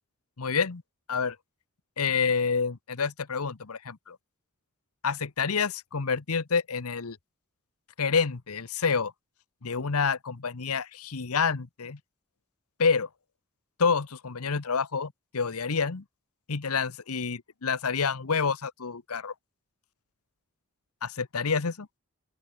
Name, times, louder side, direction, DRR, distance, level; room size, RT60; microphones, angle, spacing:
voice 1, 0.4-0.8 1.1-1.4 2.0-4.2 5.0-7.2 8.0-9.1 9.6-12.0 12.8-13.1 13.8-16.0 16.5-19.3 21.0-21.9, left 5 dB, 80° left, 1.0 m, -28 dB
open air
head